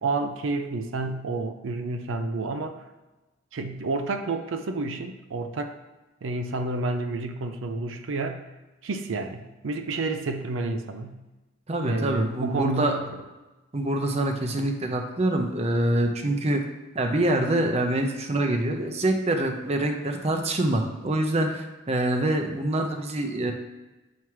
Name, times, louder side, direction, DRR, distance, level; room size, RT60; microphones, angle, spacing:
voice 1, 0.0-2.8 3.5-5.8 6.2-8.4 8.8-11.2 11.8-13.0, right 3 dB, 85° right, 7 dB, 0.5 m, -30 dB
voice 2, 11.7-12.9 13.7-16.6 16.9-23.5, right 1 dB, 35° right, 4 dB, 0.6 m, -25 dB
7.4 x 3.0 x 4.7 m, 1.1 s
head